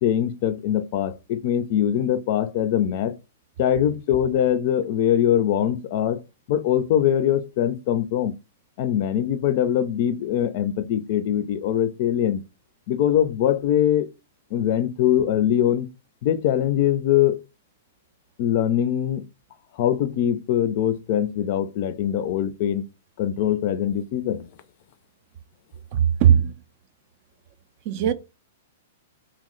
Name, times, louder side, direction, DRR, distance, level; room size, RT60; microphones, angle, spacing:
voice 1, 0.0-3.2 3.6-6.2 6.5-8.3 8.8-12.4 12.9-14.1 14.5-15.9 16.2-17.4 18.4-19.2 19.8-22.8 23.2-24.5, left 10 dB, 50° left, 0.4 m, -22 dB
voice 2, 25.9-26.6 27.9-28.1, right 9 dB, 45° right, 0.4 m, -18 dB
2.8 x 2.0 x 3.8 m
hypercardioid pair, 125°, 0 cm